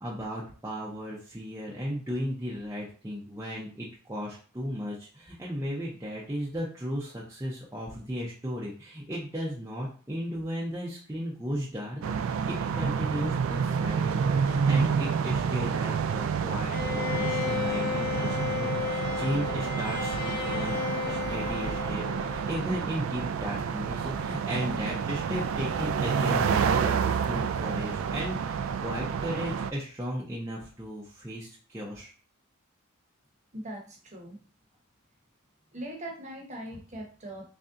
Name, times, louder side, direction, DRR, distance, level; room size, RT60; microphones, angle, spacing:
voice 1, 0.0-20.8 21.1-32.1, equal, 15° right, -6 dB, 0.6 m, -35 dB
sound 1, 12.0-29.7, right 6 dB, 75° right, 0.3 m, -29 dB
Bowed string instrument, 16.7-22.8, left 7 dB, 40° left, 0.6 m, -33 dB
voice 2, 33.5-34.4 35.7-37.4, right 1 dB, 35° right, 0 dB, 0.9 m, -40 dB
3.3 x 2.6 x 3.6 m, 0.40 s
head